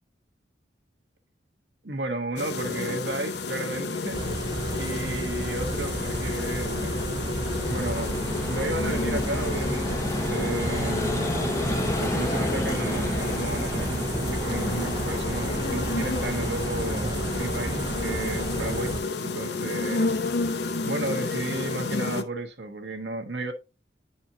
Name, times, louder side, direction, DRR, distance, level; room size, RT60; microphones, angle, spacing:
voice 1, 1.8-4.2 4.7-7.3 7.7-10.0 10.3-11.4 12.0-20.2 20.8-23.5, right 2 dB, 70° right, 1.1 m, -33 dB
sound 1, 2.4-22.2, left 3 dB, 60° left, 0.6 m, -31 dB
sound 2, 4.1-19.0, right 2 dB, 25° right, 0.5 m, -32 dB
Vehicle, 5.1-19.7, left 1 dB, 15° left, 0.7 m, -34 dB
10.0 x 4.3 x 2.7 m
head